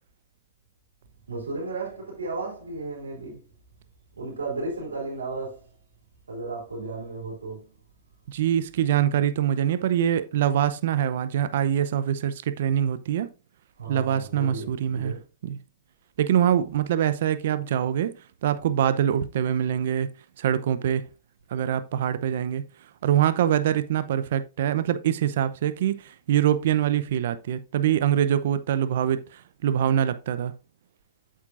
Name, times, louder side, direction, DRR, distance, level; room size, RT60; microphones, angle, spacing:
voice 1, 1.3-3.4 4.2-5.7 6.3-7.7 13.8-15.2, right 3 dB, 85° right, 3.7 m, -34 dB
voice 2, 8.3-13.3 13.9-15.2 15.4-15.6 16.2-18.1 18.4-20.1 20.4-21.1 21.5-22.6 23.0-30.5, right 10 dB, 65° right, 0.7 m, -24 dB
8.3 x 7.5 x 2.5 m
hypercardioid pair, 115°, 0 cm